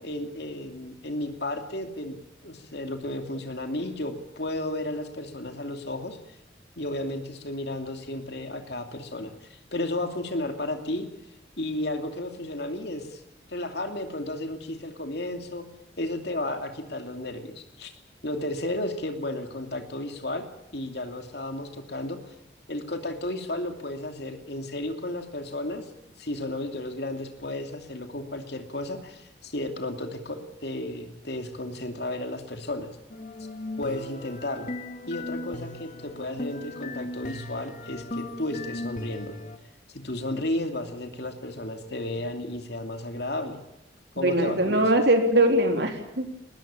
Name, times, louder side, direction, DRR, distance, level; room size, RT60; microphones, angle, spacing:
voice 1, 0.0-2.2 2.4-6.2 6.8-11.1 11.6-13.2 13.5-15.6 16.0-17.9 18.2-20.4 20.7-22.3 22.7-25.9 26.2-33.0 33.8-34.7 35.1-39.3 39.9-43.6 44.2-44.9, left 1 dB, 60° left, 6 dB, 2.7 m, -33 dB
sound 1, 33.1-39.6, left 2 dB, 40° left, 2.0 m, -37 dB
voice 2, 44.2-46.3, right 1 dB, 60° right, 4 dB, 3.7 m, -22 dB
21.5 x 20.0 x 8.9 m, 0.87 s
head